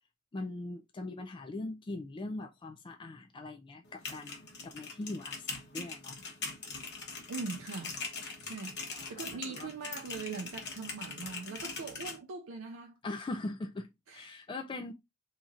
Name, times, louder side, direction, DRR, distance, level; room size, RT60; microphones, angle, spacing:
voice 1, 0.3-6.2 8.9-9.7 13.0-14.9, left 2 dB, 25° left, 0.4 m, -41 dB
sound 1, 3.8-12.2, left 4 dB, 55° left, 1.0 m, -42 dB
voice 2, 7.3-8.0 8.4-8.8 9.1-13.0 14.1-14.4, right 4 dB, 65° right, 0.5 m, -41 dB
2.9 x 2.4 x 4.1 m
head